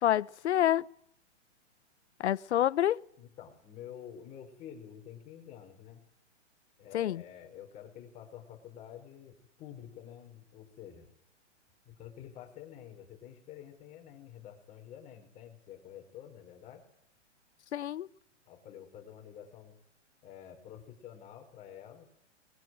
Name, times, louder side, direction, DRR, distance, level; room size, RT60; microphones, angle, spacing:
voice 1, 0.0-0.8 2.2-3.0 6.9-7.2 17.7-18.1, left 11 dB, 70° left, 1.0 m, -27 dB
voice 2, 3.2-6.0 6.8-11.1 11.8-16.9 18.5-19.7 20.2-22.1, left 10 dB, 20° left, 5.0 m, -49 dB
24.0 x 21.5 x 9.4 m
hypercardioid pair, 160°, 36 cm